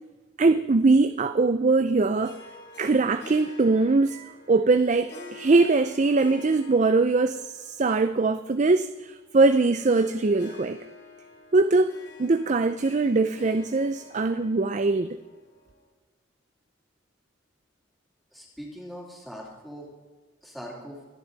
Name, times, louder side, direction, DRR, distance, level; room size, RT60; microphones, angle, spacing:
voice 1, 0.4-2.4 2.8-10.8 11.5-15.2, right 3 dB, 35° right, 10 dB, 0.4 m, -22 dB
Harp, 2.2-15.8, left 3 dB, 50° left, 3.4 m, -48 dB
voice 2, 18.3-19.9 20.4-21.0, equal, ahead, -4 dB, 3.1 m, -41 dB
26.0 x 10.5 x 4.0 m, 1.3 s
head